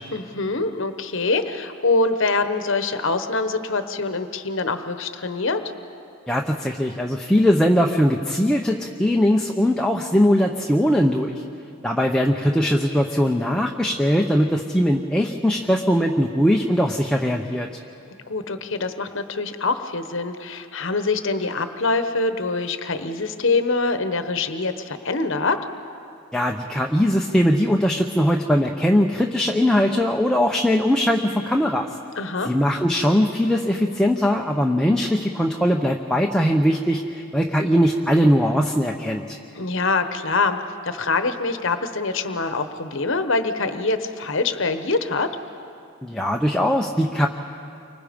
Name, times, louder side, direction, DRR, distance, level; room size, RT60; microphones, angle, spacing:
voice 1, 0.1-5.6 18.3-25.6 32.2-32.5 39.6-40.6 40.8-45.3, left 3 dB, 60° left, 9 dB, 1.1 m, -24 dB
voice 2, 6.3-11.4 11.8-17.7 26.3-31.9 32.4-39.4 46.0-47.3, equal, 5° left, 1 dB, 0.8 m, -20 dB
29.5 x 25.0 x 5.2 m, 2.5 s
head